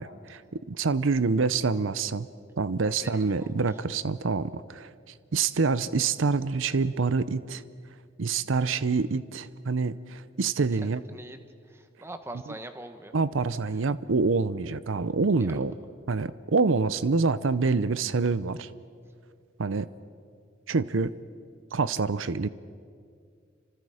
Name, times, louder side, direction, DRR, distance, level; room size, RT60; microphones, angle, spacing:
voice 1, 0.0-2.3 2.6-4.9 5.3-7.6 8.2-11.0 13.1-15.7 16.1-18.7 19.6-19.9 20.7-21.1 21.7-22.5, right 4 dB, 85° right, 16 dB, 0.6 m, -26 dB
voice 2, 2.8-3.6 11.1-11.4 11.7-13.1 15.4-15.5, right 1 dB, 15° right, 8 dB, 1.1 m, -43 dB
29.0 x 25.5 x 5.0 m, 2.2 s
head